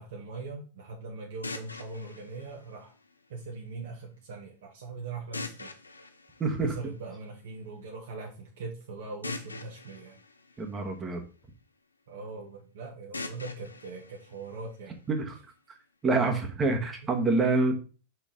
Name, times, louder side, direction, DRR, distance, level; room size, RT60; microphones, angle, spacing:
voice 1, 0.0-2.9 3.3-5.7 6.6-10.1 12.1-15.0, right 3 dB, 55° right, -1 dB, 1.5 m, -41 dB
sound 1, 1.4-3.5 5.3-7.3 9.2-11.4 13.1-15.2, left 3 dB, 80° left, 0.7 m, -43 dB
voice 2, 6.4-6.7 10.6-11.2 15.1-15.3 16.0-17.7, right 3 dB, 20° right, 4 dB, 1.6 m, -26 dB
5.8 x 4.7 x 5.2 m, 0.35 s
figure-of-eight pair, 90°, 0 cm